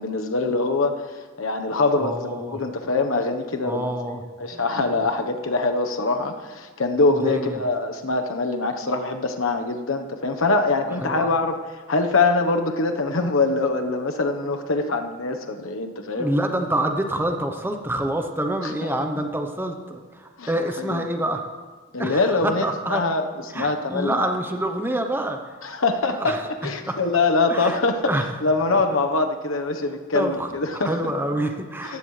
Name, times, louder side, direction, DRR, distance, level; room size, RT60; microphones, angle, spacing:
voice 1, 0.0-3.9 4.4-11.6 11.9-16.3 20.4-20.5 20.8-21.0 21.9-22.6 22.9-23.2 23.5-24.3 25.6-28.1 28.4-31.0 31.8-32.0, left 3 dB, 80° left, 5 dB, 1.2 m, -23 dB
voice 2, 1.9-2.6 3.6-4.2 4.5-5.0 7.2-7.5 11.0-11.3 16.1-21.4 22.0-23.0 23.5-25.5 26.1-26.4 26.9-27.0 27.5-28.2 28.7-28.8 30.1-32.0, right 1 dB, 10° right, 4 dB, 0.8 m, -27 dB
18.0 x 15.0 x 3.3 m, 1.4 s
head